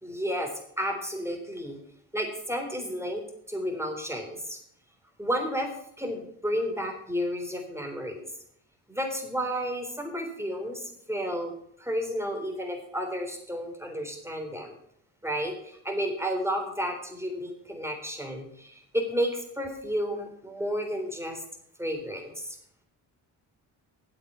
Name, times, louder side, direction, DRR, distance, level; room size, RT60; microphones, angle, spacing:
voice 1, 0.0-1.8 2.1-4.6 5.2-8.2 8.9-11.5 11.8-14.7 15.2-21.4 21.8-22.6, equal, 5° right, 3 dB, 3.5 m, -32 dB
8.4 x 8.3 x 8.1 m, 0.69 s
supercardioid pair, 50°, 49 cm